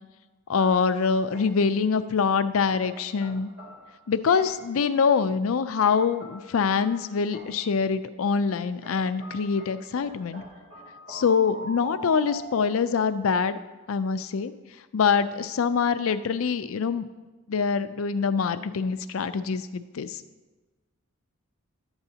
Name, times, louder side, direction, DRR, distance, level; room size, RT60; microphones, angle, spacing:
voice 1, 0.5-3.5 4.1-10.4 11.1-13.6 13.9-14.5 14.9-17.0 17.5-20.2, left 5 dB, 70° left, 12 dB, 0.4 m, -24 dB
sound 1, 0.6-1.8 2.8-4.8 5.8-7.8 8.8-13.1, right 1 dB, 75° right, 3.2 m, -45 dB
12.0 x 7.9 x 2.8 m, 1.2 s
head